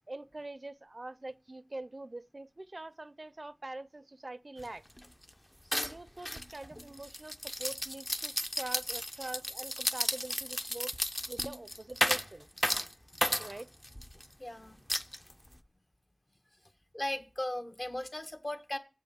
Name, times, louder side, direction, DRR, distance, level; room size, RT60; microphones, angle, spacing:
voice 1, 0.1-4.8 5.7-10.9 11.3-12.5 13.4-13.7, right 2 dB, 65° right, 0.5 m, -44 dB
sound 1, 4.6-4.7 5.0-5.3 5.7-14.3 14.9-15.6, equal, 15° left, 0.5 m, -34 dB
voice 2, 14.4-14.8 16.9-18.8, left 1 dB, 45° left, 1.2 m, -37 dB
7.6 x 5.3 x 7.3 m
wide cardioid pair, 40°, 0 cm